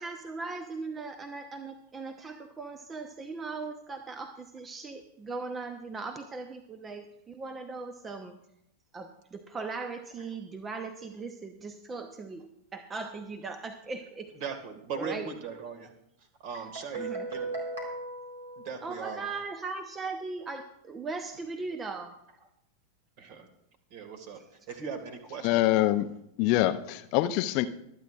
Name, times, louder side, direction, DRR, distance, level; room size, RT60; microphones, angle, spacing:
voice 1, 0.0-8.4 8.9-14.3 14.9-15.3 16.9-17.3 18.8-22.1, right 4 dB, 20° right, 8 dB, 0.9 m, -39 dB
voice 2, 14.3-15.9 16.4-17.6 18.6-19.3 23.2-23.5 23.9-24.4 24.7-25.6, right 6 dB, 45° right, 7 dB, 2.0 m, -39 dB
Guitar, 16.5-19.3, right 2 dB, 65° right, 4.0 m, -38 dB
voice 3, 25.4-26.1 26.4-27.7, left 15 dB, 45° left, 12 dB, 0.6 m, -25 dB
24.5 x 9.3 x 2.5 m, 0.80 s
figure-of-eight pair, 90°, 0 cm